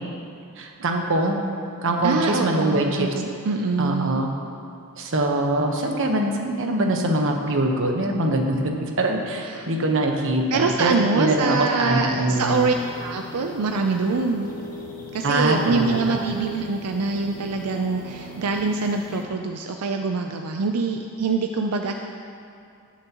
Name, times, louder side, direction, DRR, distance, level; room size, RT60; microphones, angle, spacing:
voice 1, 0.6-1.4 1.8-3.1 3.8-4.3 5.0-8.7 9.0-12.7 15.2-16.2, right 1 dB, 60° right, 2 dB, 1.1 m, -23 dB
voice 2, 2.0-4.2 9.4-9.7 10.5-12.7 13.0-14.5 15.1-21.9, right 4 dB, 90° right, 4 dB, 0.5 m, -24 dB
sound 1, 12.3-19.2, equal, 40° left, 1.2 m, -39 dB
17.5 x 7.3 x 3.0 m, 2.4 s
head